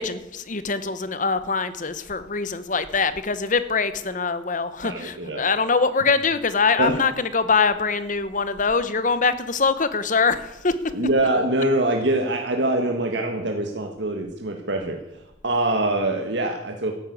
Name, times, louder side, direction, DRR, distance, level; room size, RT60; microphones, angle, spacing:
voice 1, 0.0-10.8, left 4 dB, 40° left, 13 dB, 1.0 m, -23 dB
voice 2, 4.8-5.4 6.8-6.9 10.9-16.9, right 1 dB, 65° right, 3 dB, 1.5 m, -24 dB
13.5 x 11.5 x 8.4 m, 0.91 s
head